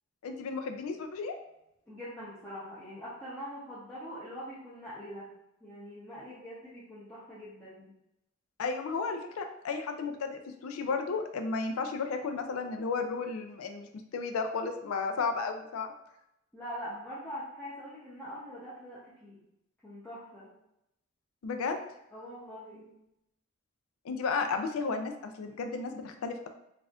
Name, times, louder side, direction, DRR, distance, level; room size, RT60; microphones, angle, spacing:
voice 1, 0.2-1.3 8.6-13.9 14.1-15.9 21.4-21.8 24.0-26.5, left 4 dB, 90° left, 6 dB, 0.4 m, -33 dB
voice 2, 1.9-5.3 5.6-7.9 16.5-19.4 19.8-20.5 22.1-22.9, equal, 10° left, -10 dB, 0.7 m, -43 dB
4.1 x 2.4 x 2.4 m, 0.83 s
head